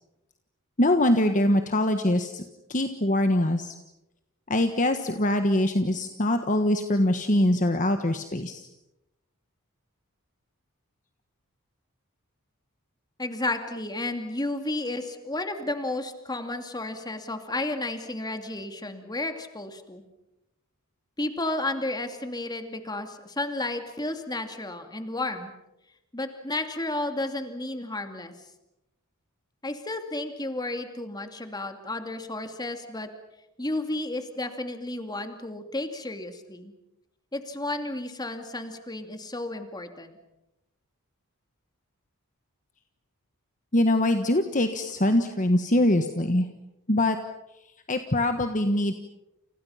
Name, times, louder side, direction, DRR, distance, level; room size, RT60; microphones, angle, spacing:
voice 1, 0.8-2.4 2.7-3.7 4.5-8.7 43.7-46.5 46.9-47.2 47.9-48.9, left 1 dB, 35° left, 7 dB, 1.4 m, -23 dB
voice 2, 13.2-20.0 21.2-25.5 26.1-28.3 29.6-33.1 33.6-36.7 37.3-40.2, left 2 dB, 20° left, 6 dB, 2.5 m, -32 dB
30.0 x 29.5 x 5.8 m, 0.92 s
head